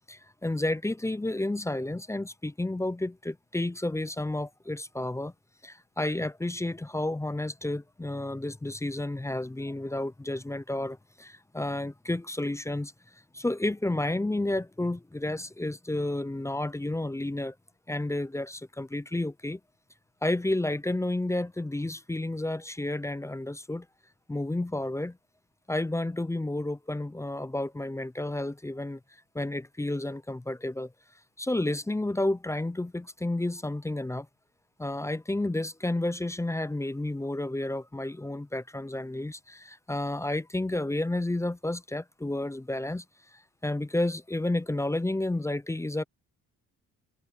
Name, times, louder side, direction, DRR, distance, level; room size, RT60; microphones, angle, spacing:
voice 1, 0.1-5.3 5.6-12.9 13.3-17.5 17.9-19.6 20.2-23.9 24.3-25.2 25.7-29.0 29.3-30.9 31.4-34.3 34.8-43.0 43.3-46.0, left 1 dB, 10° left, 0.7 m, -31 dB
cardioid pair, 90°, 30 cm